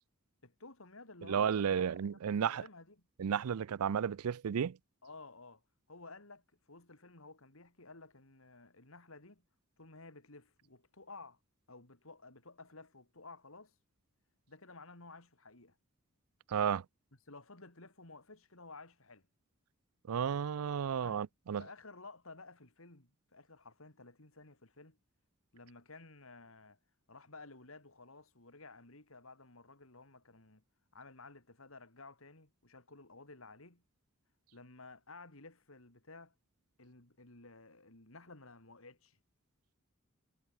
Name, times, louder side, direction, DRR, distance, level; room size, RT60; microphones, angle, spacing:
voice 1, 0.4-3.1 5.0-5.6 5.9-9.4 9.8-11.4 11.7-13.8 14.5-15.8 17.3-19.3 20.9-21.3 21.6-25.0 25.5-26.8 27.1-30.6 30.9-33.8 34.5-36.4 36.8-39.2, left 3 dB, 70° left, 3.5 m, -54 dB
voice 2, 1.3-2.6 3.2-4.8 16.5-16.8 20.1-21.6, right 7 dB, 85° right, 0.4 m, -33 dB
head